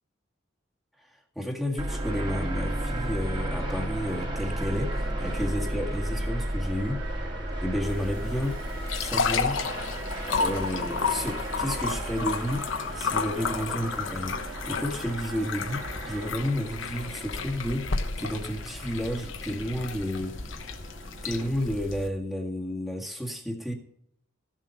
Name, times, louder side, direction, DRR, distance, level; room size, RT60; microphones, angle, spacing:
voice 1, 1.3-7.0 7.6-8.6 9.0-9.6 10.4-20.4 21.2-23.7, equal, ahead, 0 dB, 1.9 m, -31 dB
sound 1, 1.8-21.5, right 1 dB, 25° right, 2.6 m, -34 dB
sound 2, 4.9-16.3, right 3 dB, 75° right, 1.4 m, -44 dB
sound 3, 7.9-22.1, left 5 dB, 75° left, 1.1 m, -32 dB
15.0 x 7.4 x 5.6 m, 0.73 s
head